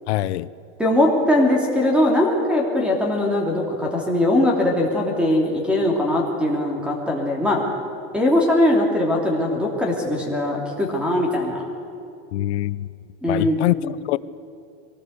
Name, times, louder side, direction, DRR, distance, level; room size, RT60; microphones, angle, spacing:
voice 1, 0.1-0.5 12.3-12.9 13.3-13.8 14.1-14.2, left 16 dB, 70° left, 0.8 m, -23 dB
voice 2, 0.8-7.6 8.1-11.6 13.2-13.9, left 1 dB, 5° right, 2.9 m, -20 dB
23.5 x 18.5 x 8.1 m
supercardioid pair, 175°, 35 cm